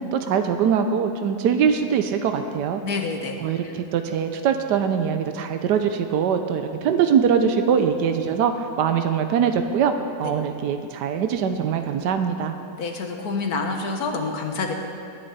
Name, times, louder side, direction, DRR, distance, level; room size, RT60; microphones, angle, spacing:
voice 1, 0.1-2.8 3.4-8.5 8.8-9.9 10.2-12.5, right 7 dB, 90° right, 7 dB, 1.3 m, -22 dB
voice 2, 2.8-3.4 3.6-3.7 10.2-10.3 12.8-14.7, left 4 dB, 65° left, 3 dB, 1.7 m, -27 dB
19.5 x 11.0 x 4.2 m, 2.6 s
omnidirectional pair, 1.8 m